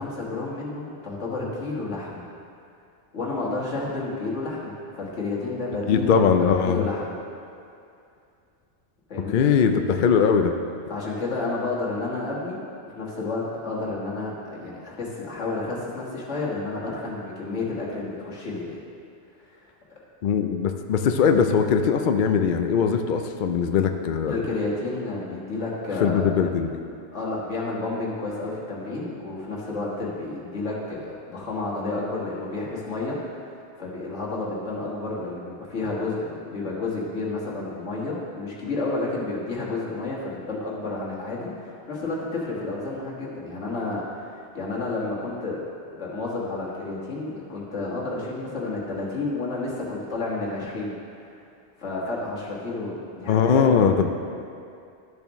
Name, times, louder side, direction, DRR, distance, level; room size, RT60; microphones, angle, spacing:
voice 1, 0.0-2.3 3.1-6.2 6.6-7.2 9.1-9.5 10.9-12.6 13.0-18.8 19.5-19.7 24.3-26.3 27.1-45.6 46.0-51.3 51.8-53.8, left 3 dB, 80° left, -5 dB, 1.9 m, -31 dB
voice 2, 5.9-6.8 9.3-10.5 20.2-24.4 26.0-26.7 53.3-54.1, left 6 dB, 60° left, 6 dB, 0.5 m, -21 dB
12.5 x 7.0 x 3.1 m, 2.5 s
omnidirectional pair, 1.2 m